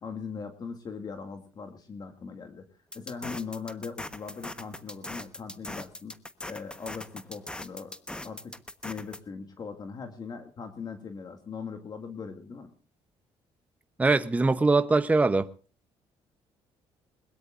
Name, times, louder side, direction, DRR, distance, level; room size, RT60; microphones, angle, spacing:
voice 1, 0.0-2.7 2.9-6.1 6.5-8.0 8.2-8.6 8.8-12.7, left 5 dB, 40° left, 2.1 m, -40 dB
sound 1, 2.9-9.2, left 1 dB, 10° left, 1.2 m, -40 dB
voice 2, 14.0-15.5, right 3 dB, 15° right, 0.8 m, -22 dB
21.0 x 21.0 x 2.5 m
cardioid pair, 125°, 11 cm